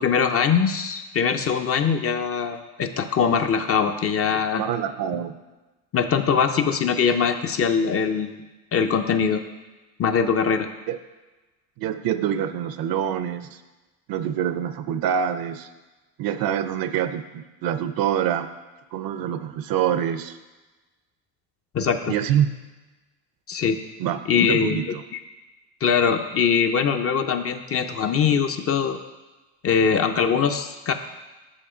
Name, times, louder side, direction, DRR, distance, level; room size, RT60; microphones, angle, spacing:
voice 1, 0.0-4.6 5.1-5.2 5.9-8.4 8.7-9.4 10.0-10.7 21.7-22.2 23.5-23.8 24.3-25.2 25.8-29.0 29.6-30.9, left 6 dB, 35° left, 7 dB, 0.5 m, -22 dB
voice 2, 4.5-5.4 10.9-11.0 11.8-13.6 14.1-15.7 16.2-18.5 18.9-20.4 22.1-22.5 24.0-25.0, right 9 dB, 55° right, 11 dB, 0.6 m, -25 dB
7.2 x 5.3 x 5.0 m, 1.2 s
supercardioid pair, 95°, 42 cm